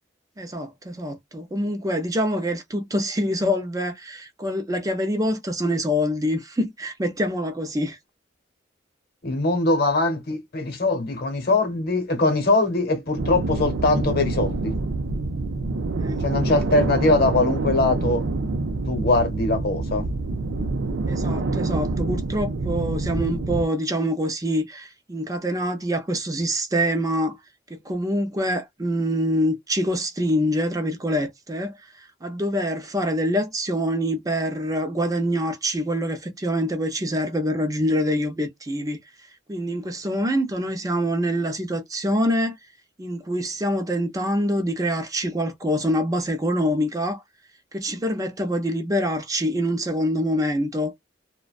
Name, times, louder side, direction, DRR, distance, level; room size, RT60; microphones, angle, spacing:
voice 1, 0.4-8.0 16.0-16.3 16.5-16.6 21.1-27.4 27.7-39.0 39.5-42.6 43.0-47.2 47.7-50.9, equal, 20° right, 0.5 m, -25 dB
voice 2, 9.2-14.7 16.2-18.2 18.9-20.0, left 2 dB, 55° left, 0.9 m, -22 dB
sound 1, 13.2-23.7, right 3 dB, 90° right, 0.5 m, -26 dB
2.4 x 2.2 x 2.3 m
head